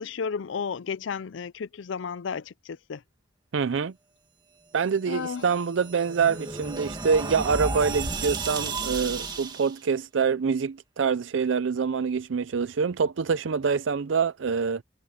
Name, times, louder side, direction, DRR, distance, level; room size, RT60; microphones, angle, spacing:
voice 1, 0.0-3.0 5.1-5.5, left 6 dB, 80° left, 0.5 m, -33 dB
voice 2, 3.5-3.9 4.7-14.8, right 5 dB, 80° right, 0.5 m, -25 dB
sound 1, 5.3-9.8, right 3 dB, 25° right, 2.2 m, -33 dB
head